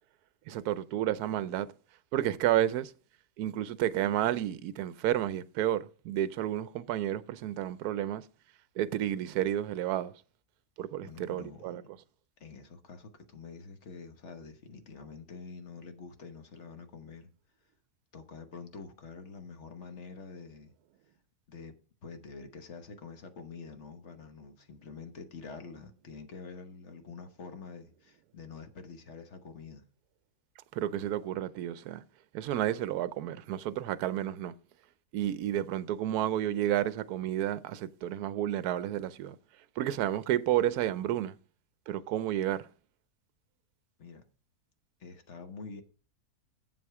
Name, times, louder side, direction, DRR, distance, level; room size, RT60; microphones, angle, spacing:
voice 1, 0.5-1.7 2.1-2.9 3.4-8.2 8.8-10.1 10.8-11.8 30.7-32.0 32.3-34.5 35.1-39.4 39.8-41.4 41.9-42.7, right 12 dB, 75° right, 1.1 m, -31 dB
voice 2, 11.0-11.7 12.4-17.3 18.1-20.7 21.5-21.8 22.0-29.9 44.0-44.3 45.0-45.8, left 4 dB, 50° left, 1.3 m, -46 dB
7.8 x 7.7 x 4.7 m
omnidirectional pair, 1.7 m